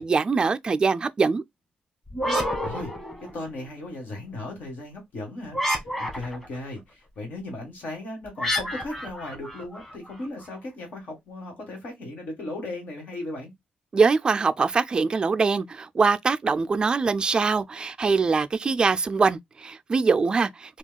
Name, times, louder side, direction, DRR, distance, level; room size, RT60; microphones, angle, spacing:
voice 1, 0.0-1.4 13.9-20.8, right 4 dB, 30° right, 0.3 m, -23 dB
sound 1, 2.1-3.6 5.5-6.6 8.4-10.3, equal, 10° left, 1.7 m, -29 dB
voice 2, 2.6-2.9 3.2-13.5, left 2 dB, 65° left, 1.5 m, -37 dB
4.4 x 2.3 x 2.2 m
cardioid pair, 120°, 3 cm